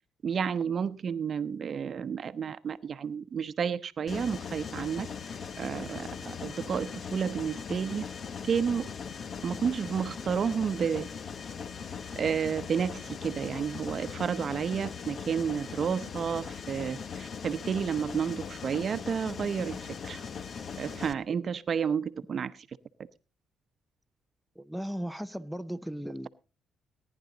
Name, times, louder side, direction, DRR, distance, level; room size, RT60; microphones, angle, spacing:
voice 1, 0.2-8.1 8.4-8.9 9.4-11.1 12.2-20.2 20.8-22.8, right 7 dB, 50° right, 0.8 m, -31 dB
Mechanisms, 4.1-21.1, left 6 dB, 50° left, 0.8 m, -40 dB
voice 2, 24.6-26.3, equal, ahead, 0.5 m, -36 dB
18.0 x 10.5 x 3.9 m
cardioid pair, 90°, 0 cm